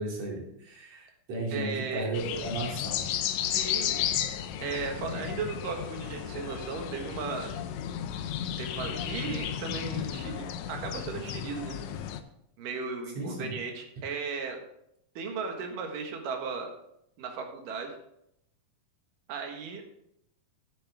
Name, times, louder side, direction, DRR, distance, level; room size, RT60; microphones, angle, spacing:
voice 1, 0.0-3.0 13.1-13.6, right 2 dB, 55° right, -3 dB, 4.1 m, -34 dB
voice 2, 1.5-2.1 3.4-4.0 4.3-7.5 8.6-11.8 12.6-14.6 15.2-16.7 17.2-17.9 19.3-19.8, right 5 dB, 75° right, 3 dB, 3.2 m, -36 dB
sound 1, 2.1-12.2, left 10 dB, 75° left, 1.7 m, -33 dB
11.5 x 9.7 x 3.5 m, 0.76 s
omnidirectional pair, 3.8 m